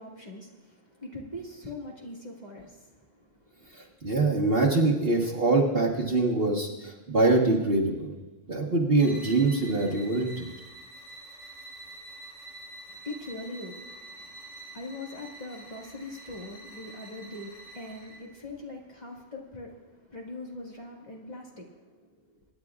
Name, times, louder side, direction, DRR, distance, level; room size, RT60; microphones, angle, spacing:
voice 1, 0.0-3.9 12.9-22.4, left 2 dB, 35° left, -2 dB, 1.8 m, -42 dB
voice 2, 3.7-8.1 8.5-10.5, right 2 dB, 50° right, -2 dB, 1.6 m, -24 dB
sound 1, 8.9-18.3, right 2 dB, 80° left, 5.5 m, -47 dB
25.0 x 10.5 x 2.4 m, 1.1 s
omnidirectional pair, 1.3 m